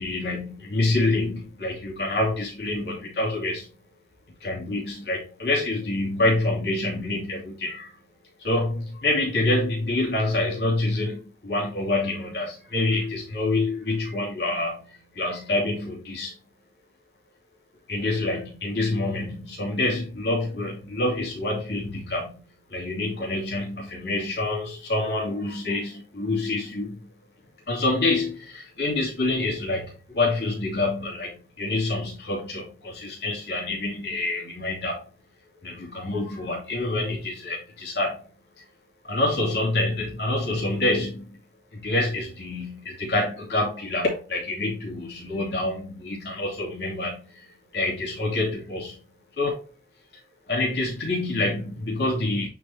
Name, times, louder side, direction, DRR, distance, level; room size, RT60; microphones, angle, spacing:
voice 1, 0.0-3.7 4.4-7.9 8.4-16.4 17.9-22.4 22.7-27.1 27.7-35.0 35.6-38.3 38.6-38.7 39.0-41.4 41.7-49.0 49.4-49.6 50.5-52.5, left 2 dB, 70° left, 2.8 m, -27 dB
8.5 x 5.1 x 2.8 m
head